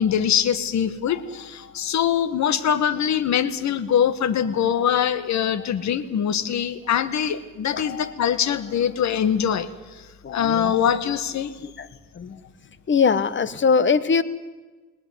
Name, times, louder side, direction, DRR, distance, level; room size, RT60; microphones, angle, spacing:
voice 1, 0.0-9.7 10.3-11.5, left 8 dB, 65° left, 15 dB, 1.5 m, -23 dB
voice 2, 10.2-10.7 11.6-11.9 12.2-12.4 12.9-14.2, left 5 dB, 40° left, 17 dB, 1.3 m, -21 dB
20.0 x 19.5 x 9.3 m, 1.3 s
cardioid pair, 90°, 30 cm